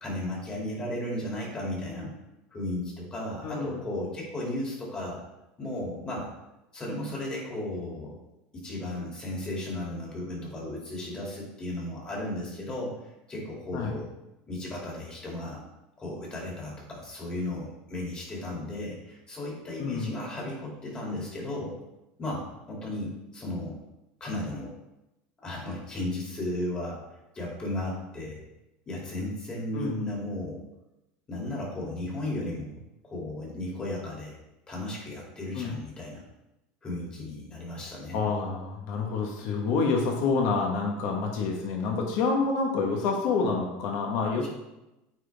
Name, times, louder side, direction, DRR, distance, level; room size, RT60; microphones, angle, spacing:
voice 1, 0.0-2.1 2.5-5.2 5.6-6.3 6.7-8.2 8.5-13.0 13.3-14.1 14.5-15.6 16.0-21.8 22.2-23.8 24.2-24.7 25.4-27.0 27.3-28.4 28.9-30.6 31.3-32.7 33.0-34.4 34.7-36.2 36.8-38.2 44.4-44.5, left 1 dB, 20° left, -3 dB, 2.4 m, -35 dB
voice 2, 3.4-3.8 13.7-13.9 19.8-20.2 29.7-30.0 35.5-35.7 38.1-44.5, left 4 dB, 55° left, 0 dB, 1.3 m, -28 dB
9.0 x 4.2 x 3.4 m, 0.94 s
supercardioid pair, 145°, 5 cm